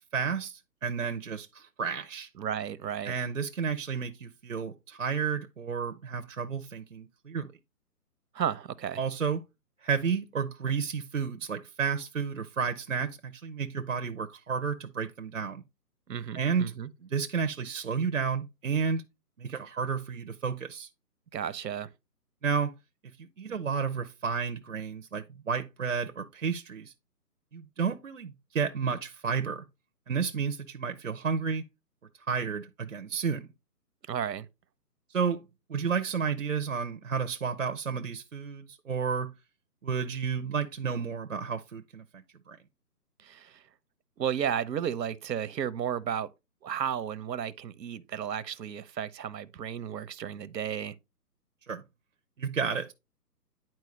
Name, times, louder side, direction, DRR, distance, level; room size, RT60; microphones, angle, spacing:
voice 1, 0.1-2.3 3.1-7.5 9.0-9.4 9.8-15.6 16.4-16.7 17.0-19.0 19.4-20.9 22.4-22.7 23.2-26.9 27.5-29.6 30.1-31.6 32.3-33.5 35.1-35.4 35.7-39.3 39.8-42.6 51.7-51.8 52.4-52.9, right 6 dB, 55° right, 0.5 m, -31 dB
voice 2, 2.4-3.1 8.3-9.0 16.1-16.9 21.3-21.9 34.1-34.5 43.2-43.6 44.2-46.3 46.6-51.0, right 9 dB, 85° right, 0.8 m, -33 dB
9.7 x 4.5 x 3.1 m
hypercardioid pair, 180°, 49 cm